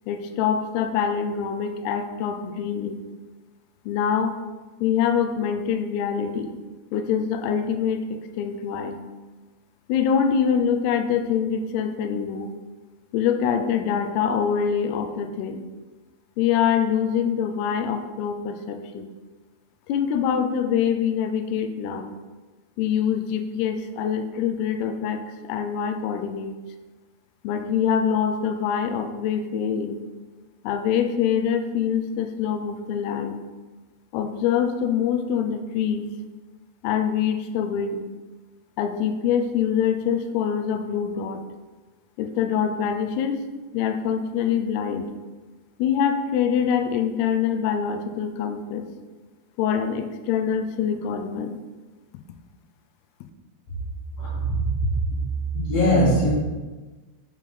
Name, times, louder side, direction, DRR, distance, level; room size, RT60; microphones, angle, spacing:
voice 1, 0.1-3.0 3.9-4.3 4.8-6.5 6.9-9.0 9.9-12.5 13.1-15.6 16.4-19.1 19.9-22.1 22.8-26.6 27.4-30.0 30.6-33.4 34.1-36.1 36.8-38.0 38.8-41.4 42.2-43.4 43.7-45.1 45.8-48.9 49.6-51.6, left 7 dB, 85° left, 7 dB, 2.3 m, -24 dB
voice 2, 54.2-54.7 55.5-56.3, equal, 65° left, -9 dB, 2.6 m, -21 dB
6.9 x 4.9 x 3.7 m, 1.3 s
omnidirectional pair, 5.1 m